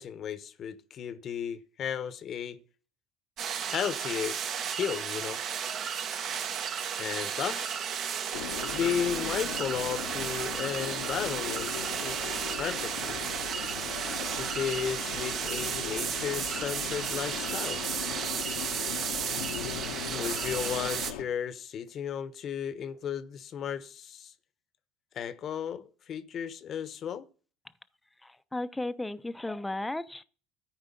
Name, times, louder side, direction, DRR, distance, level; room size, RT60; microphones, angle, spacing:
voice 1, 0.0-2.6 3.7-4.4 4.7-5.4 7.0-7.8 8.7-13.2 14.3-17.8 20.1-24.3 25.1-27.2, left 8 dB, 45° left, 1.1 m, -34 dB
sound 1, 3.4-21.1, right 8 dB, 50° right, 1.4 m, -34 dB
sound 2, 4.8-15.9, right 9 dB, 80° right, 1.6 m, -48 dB
sound 3, 8.3-21.2, left 10 dB, 90° left, 1.3 m, -39 dB
voice 2, 28.5-30.2, left 2 dB, 10° left, 0.8 m, -34 dB
13.5 x 4.9 x 8.4 m
supercardioid pair, 100°, 0 cm